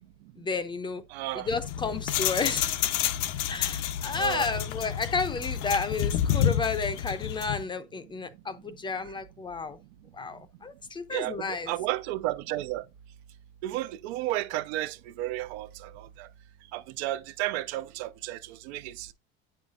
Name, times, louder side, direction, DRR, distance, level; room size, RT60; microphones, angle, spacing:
voice 1, 0.4-1.0 1.3-3.0 3.5-9.8 10.1-11.7, left 4 dB, 15° left, 0.5 m, -32 dB
voice 2, 1.1-1.5 4.2-4.5 11.1-12.8 13.6-16.3 16.7-19.1, right 15 dB, 85° right, 0.7 m, -33 dB
sound 1, 1.5-7.6, left 10 dB, 80° left, 0.8 m, -29 dB
8.3 x 5.7 x 2.4 m
cardioid pair, 155°, 32 cm